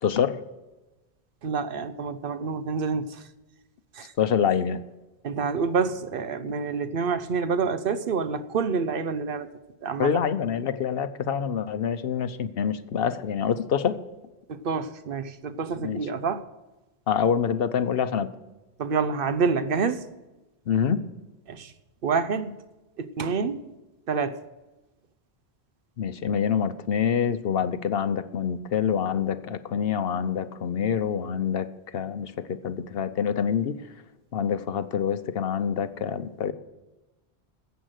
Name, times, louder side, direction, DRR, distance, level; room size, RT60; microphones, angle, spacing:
voice 1, 0.0-0.4 4.2-4.8 10.0-14.0 15.8-16.1 17.1-18.3 20.7-21.0 26.0-31.7 31.9-33.8 34.3-36.5, left 7 dB, 65° left, 12 dB, 0.9 m, -26 dB
voice 2, 1.4-3.2 3.9-4.1 5.2-9.5 9.8-10.1 14.5-16.4 18.8-20.0 21.5-21.7 22.0-22.5 23.0-23.7 24.1-24.4, right 5 dB, 60° right, 12 dB, 0.9 m, -27 dB
14.0 x 8.1 x 6.5 m, 1.1 s
omnidirectional pair, 1.1 m